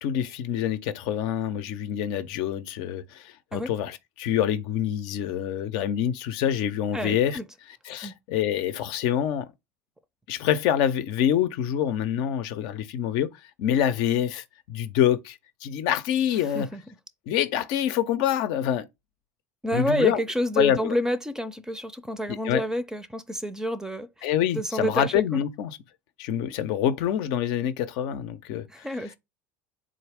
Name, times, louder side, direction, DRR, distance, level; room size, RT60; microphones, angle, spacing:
voice 1, 0.0-7.4 7.8-9.5 10.3-13.3 13.6-16.7 17.3-18.9 19.7-20.2 20.6-20.9 22.3-22.6 24.2-25.8 26.2-28.9, left 10 dB, 65° left, 0.6 m, -26 dB
voice 2, 6.9-7.5 8.0-8.1 16.5-16.8 19.6-24.3 24.5-25.4 28.7-29.2, equal, 5° right, 0.5 m, -29 dB
3.8 x 2.4 x 3.4 m
hypercardioid pair, 90°, 8 cm